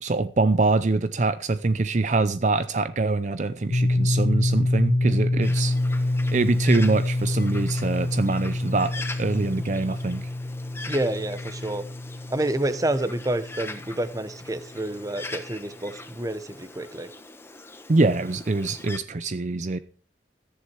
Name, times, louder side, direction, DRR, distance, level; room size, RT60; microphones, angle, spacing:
voice 1, 0.0-5.7 6.3-10.3 17.9-19.8, right 3 dB, 45° right, 0.6 m, -24 dB
sound 1, 3.7-14.3, left 1 dB, 50° left, 0.7 m, -26 dB
Bird, 5.4-19.0, left 2 dB, 15° left, 1.2 m, -42 dB
voice 2, 10.9-11.8 12.3-17.1, right 1 dB, 20° right, 1.0 m, -28 dB
14.5 x 10.5 x 4.7 m
head